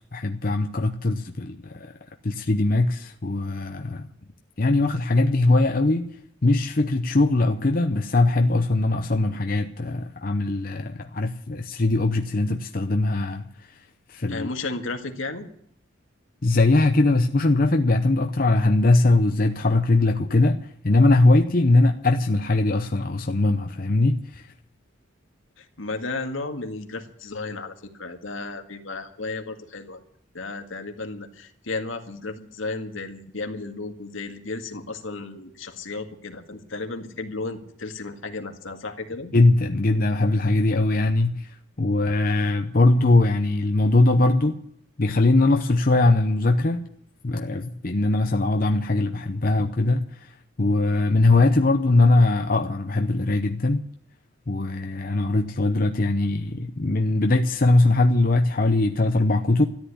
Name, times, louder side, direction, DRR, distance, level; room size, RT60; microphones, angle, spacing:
voice 1, 0.1-1.9 2.2-4.1 4.6-6.1 6.4-13.5 14.1-14.5 16.4-20.6 20.8-24.5 39.3-41.5 41.8-44.6 45.0-46.8 47.2-50.3 50.6-53.8 54.5-59.7, left 2 dB, 45° left, 0.7 m, -21 dB
voice 2, 14.3-15.5 25.6-30.0 30.3-39.3, left 3 dB, 75° left, 1.9 m, -34 dB
14.0 x 10.0 x 9.9 m
head